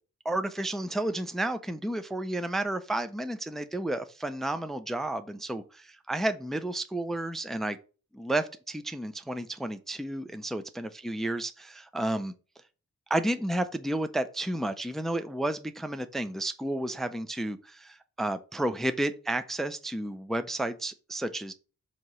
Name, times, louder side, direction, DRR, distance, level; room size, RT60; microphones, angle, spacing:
voice 1, 0.2-7.8 8.1-12.3 13.1-21.5, right 1 dB, ahead, 0.4 m, -31 dB
7.7 x 2.9 x 5.4 m
wide cardioid pair, 145°, 30 cm